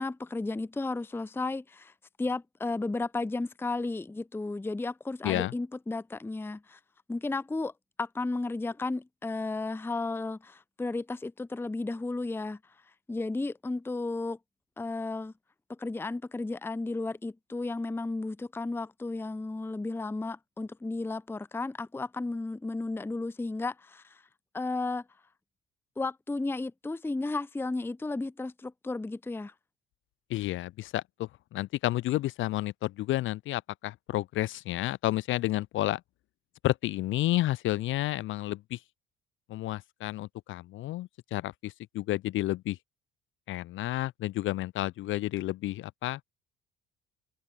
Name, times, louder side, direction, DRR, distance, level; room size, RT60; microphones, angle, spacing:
voice 1, 0.0-1.9 2.2-6.8 7.1-7.7 8.0-12.6 13.1-14.4 14.8-15.3 15.7-24.2 24.5-25.0 26.0-29.5, left 3 dB, 10° left, 0.7 m, -33 dB
voice 2, 30.3-36.0 36.6-38.8 39.5-42.8 43.5-46.2, left 16 dB, 45° left, 0.4 m, -31 dB
hypercardioid pair, 55°, 29 cm